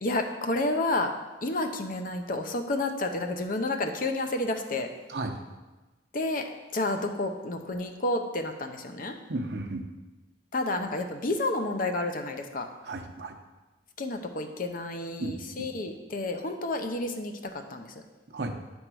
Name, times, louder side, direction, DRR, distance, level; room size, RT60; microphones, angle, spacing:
voice 1, 0.0-1.1 1.4-4.9 6.1-9.1 10.5-12.7 14.0-17.9, left 2 dB, 50° left, 6 dB, 0.7 m, -30 dB
voice 2, 9.3-9.9 12.8-13.4 15.2-15.7 18.3-18.5, right 2 dB, 70° right, 4 dB, 0.8 m, -34 dB
9.9 x 3.6 x 6.1 m, 1.2 s
head